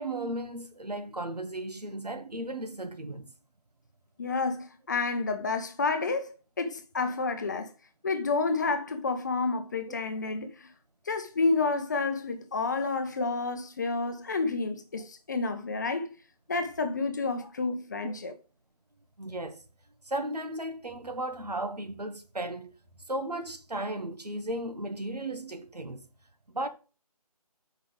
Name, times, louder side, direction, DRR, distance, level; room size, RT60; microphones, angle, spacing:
voice 1, 0.0-3.3 17.4-17.5 18.0-18.2 19.2-19.6 20.1-22.7 23.1-26.0 26.5-26.7, right 1 dB, 85° right, 1.8 m, -35 dB
voice 2, 4.2-7.7 8.0-10.7 11.1-16.1 16.5-18.3, left 3 dB, 30° left, 0.8 m, -30 dB
6.5 x 5.6 x 5.1 m
figure-of-eight pair, 160°, 20 cm